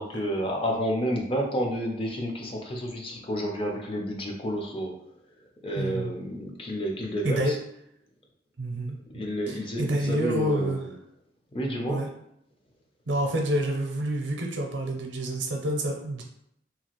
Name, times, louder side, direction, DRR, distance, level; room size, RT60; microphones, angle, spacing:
voice 1, 0.0-4.9 5.6-7.6 9.1-10.9 11.5-12.0, equal, 30° left, 1 dB, 0.4 m, -30 dB
voice 2, 5.8-6.1 7.2-7.5 8.6-10.8 11.9-12.1 13.1-16.2, right 1 dB, 80° right, 1 dB, 0.5 m, -28 dB
2.8 x 2.4 x 2.9 m, 0.75 s
head